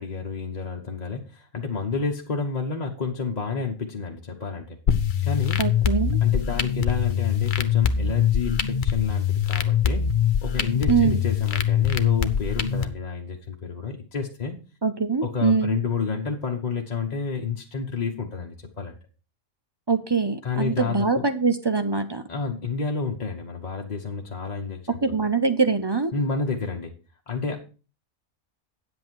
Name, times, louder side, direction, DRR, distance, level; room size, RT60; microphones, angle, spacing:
voice 1, 0.0-4.8 5.2-5.6 6.2-10.1 10.4-14.5 15.2-19.0 20.4-21.2 22.3-25.2 26.1-26.9 27.3-27.6, left 5 dB, 30° left, 0 dB, 1.1 m, -30 dB
sound 1, 4.9-12.9, left 8 dB, 45° left, 0.7 m, -23 dB
voice 2, 5.6-6.2 10.9-11.2 14.8-15.8 19.9-22.2 25.0-26.1, right 5 dB, 30° right, 10 dB, 0.4 m, -23 dB
9.3 x 7.8 x 4.6 m, 0.34 s
omnidirectional pair, 1.5 m